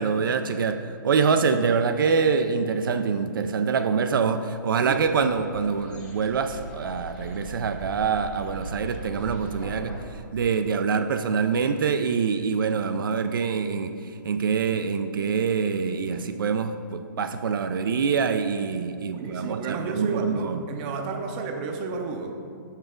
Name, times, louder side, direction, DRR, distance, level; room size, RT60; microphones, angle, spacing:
voice 1, 0.0-10.0 10.3-20.6, right 5 dB, 75° right, 8 dB, 0.4 m, -25 dB
sound 1, 4.9-10.0, right 1 dB, 10° left, 0.8 m, -39 dB
voice 2, 19.1-22.5, right 4 dB, 25° right, 4 dB, 0.6 m, -32 dB
5.8 x 5.6 x 3.6 m, 2.4 s
hypercardioid pair, 155°, 11 cm